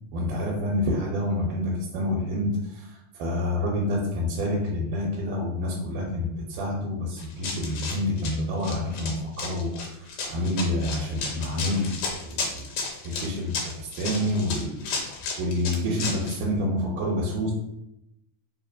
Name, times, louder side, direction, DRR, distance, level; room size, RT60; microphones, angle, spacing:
voice 1, 0.1-12.7 13.0-14.8 15.4-17.5, left 1 dB, 90° right, -3 dB, 2.2 m, -28 dB
Run, 7.2-16.4, left 4 dB, 85° left, 2.2 m, -33 dB
4.7 x 2.9 x 2.4 m, 0.83 s
omnidirectional pair, 3.6 m